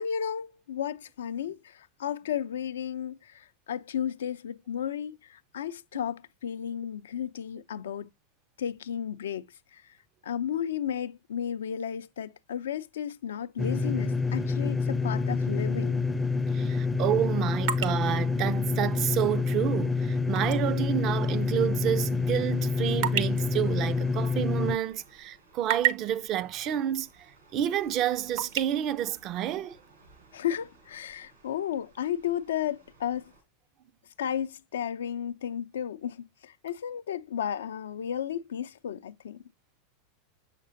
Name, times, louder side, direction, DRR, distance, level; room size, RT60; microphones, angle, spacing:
voice 1, 0.0-8.1 8.6-9.4 9.7-9.9 10.2-16.0 30.3-33.3 34.2-39.4, left 9 dB, 80° left, 0.4 m, -33 dB
sound 1, 13.6-24.8, left 4 dB, 5° left, 0.5 m, -27 dB
voice 2, 16.5-27.1 27.5-29.8, right 11 dB, 45° right, 0.5 m, -29 dB
sound 2, 17.6-20.7 21.0-21.2 21.7-24.9 25.2-26.2 27.2-27.3 27.7-28.6, right 11 dB, 65° right, 0.8 m, -33 dB
sound 3, 20.7-33.4, right 3 dB, 85° right, 3.8 m, -59 dB
6.6 x 5.9 x 2.6 m
hypercardioid pair, 95°, 0 cm